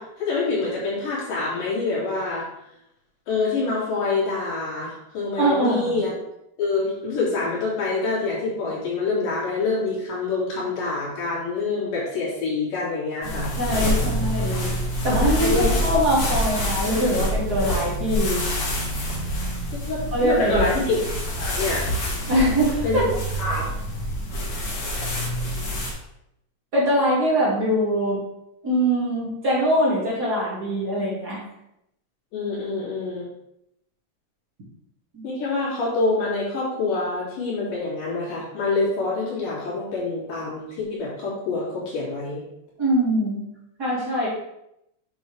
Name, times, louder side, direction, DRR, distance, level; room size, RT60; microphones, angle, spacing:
voice 1, 0.0-2.5 3.3-6.1 6.6-13.5 15.3-15.8 19.9-21.0 21.3-22.0 22.8-23.0 23.4-23.7 32.3-33.3 35.2-42.4, left 3 dB, 90° left, -7 dB, 4.4 m, -26 dB
voice 2, 5.4-6.0 13.6-14.7 15.0-18.4 20.1-20.7 22.3-23.1 26.7-28.2 28.6-31.4 35.1-35.2 42.8-43.4 43.8-44.3, equal, 30° right, -7 dB, 2.7 m, -22 dB
sound 1, 13.2-25.9, equal, 50° left, 2.4 m, -26 dB
8.4 x 6.3 x 3.3 m, 0.82 s
omnidirectional pair, 3.7 m